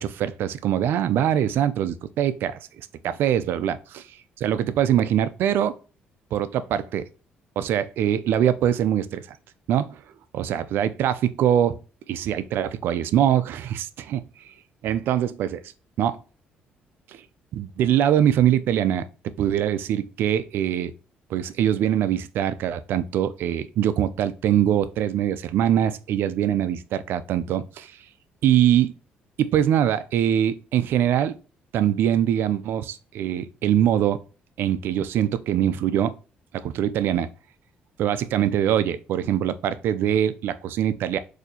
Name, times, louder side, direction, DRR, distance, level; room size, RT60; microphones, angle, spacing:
voice 1, 0.0-4.1 4.4-5.8 6.3-7.0 7.6-9.4 9.7-10.0 10.3-11.8 12.1-14.5 14.8-15.6 16.0-16.2 17.1-17.2 17.5-19.1 19.4-20.9 21.3-27.9 28.4-28.9 29.4-31.3 31.7-34.2 34.6-36.1 36.6-37.3 38.0-41.2, right 10 dB, 75° right, 0.4 m, -23 dB
4.0 x 2.7 x 2.7 m
cardioid pair, 95°, 4 cm